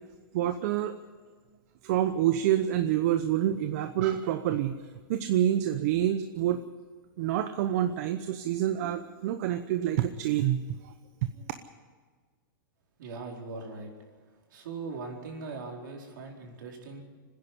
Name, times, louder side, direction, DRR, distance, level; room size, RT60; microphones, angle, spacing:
voice 1, 0.3-0.9 1.8-4.7 5.1-6.6 7.2-10.6, right 11 dB, 45° right, 9 dB, 0.9 m, -27 dB
voice 2, 13.0-13.9 14.5-17.0, right 4 dB, 65° right, 0 dB, 4.6 m, -40 dB
25.0 x 10.5 x 9.9 m, 1.5 s
supercardioid pair, 155°, 11 cm